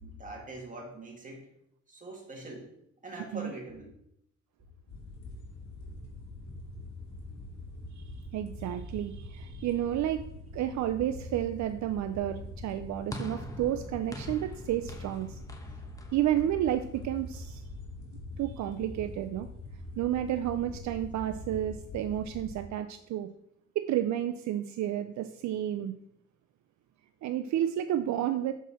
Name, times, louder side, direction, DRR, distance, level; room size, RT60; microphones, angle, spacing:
voice 1, 0.0-1.5 1.9-2.7 3.0-4.0, right 2 dB, 25° right, 0 dB, 2.2 m, -43 dB
sound 1, 4.9-22.6, left 2 dB, 65° left, 2.3 m, -44 dB
voice 2, 8.0-10.2 10.5-15.4 16.1-17.6 18.4-19.5 20.0-23.3 23.8-25.9 27.2-28.5, right 11 dB, 70° right, 8 dB, 0.5 m, -31 dB
sound 2, 13.1-17.5, left 1 dB, 10° left, 1.0 m, -45 dB
6.9 x 4.7 x 4.2 m, 0.75 s
cardioid pair, 90°, 30 cm